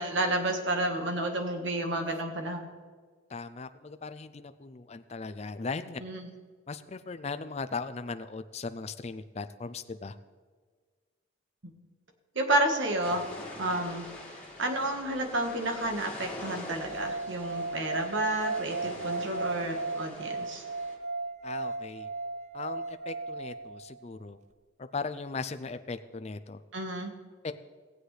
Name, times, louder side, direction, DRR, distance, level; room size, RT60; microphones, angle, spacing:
voice 1, 0.0-2.7 6.0-6.3 11.6-11.7 12.3-13.2 13.6-14.1 14.6-20.6 26.7-27.1, right 1 dB, 70° right, 4 dB, 1.5 m, -30 dB
voice 2, 3.3-6.0 6.7-10.2 21.4-22.1 22.5-24.4 24.9-26.6 27.4-27.5, left 4 dB, 30° left, 11 dB, 0.4 m, -38 dB
sound 1, 13.0-21.0, left 1 dB, 5° left, 2.1 m, -44 dB
sound 2, 16.8-23.9, right 3 dB, 35° right, 0.4 m, -35 dB
18.0 x 8.0 x 3.3 m, 1.5 s
head